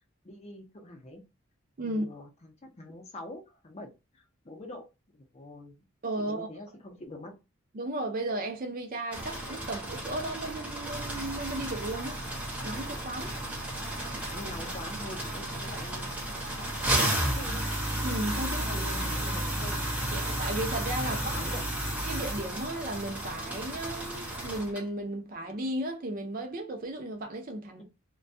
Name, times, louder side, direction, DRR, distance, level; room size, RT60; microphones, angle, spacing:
voice 1, 0.2-1.2 1.8-4.9 5.1-5.8 6.2-7.4 14.3-16.1 16.5-17.6 18.6-19.8 21.2-21.7 27.8-27.9, left 1 dB, 30° left, 0.5 m, -44 dB
voice 2, 6.0-6.5 7.7-12.2 12.6-13.3 18.0-18.6 20.1-21.4 22.1-27.8, right 1 dB, 40° right, 0.5 m, -35 dB
sound 1, 9.1-24.8, right 1 dB, 5° right, 0.7 m, -33 dB
2.2 x 2.2 x 2.5 m
head